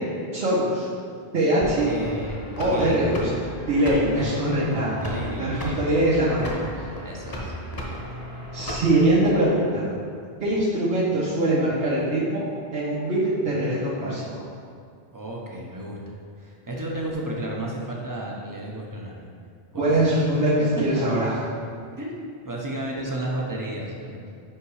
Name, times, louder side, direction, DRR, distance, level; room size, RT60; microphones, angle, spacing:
voice 1, 0.3-0.9 1.3-1.9 2.6-3.2 3.7-6.7 8.5-9.9 10.4-12.4 12.7-14.4 19.8-21.3, right 1 dB, 75° right, -13 dB, 2.1 m, -22 dB
sound 1, 1.6-9.2, equal, 20° left, 1.0 m, -35 dB
voice 2, 1.8-3.0 4.1-4.4 5.0-6.0 7.0-7.5 15.1-16.0 16.4-19.3 19.7-20.0 22.0-24.3, right 1 dB, 20° right, -2 dB, 0.9 m, -33 dB
5.6 x 5.1 x 4.9 m, 2.2 s
omnidirectional pair, 1.0 m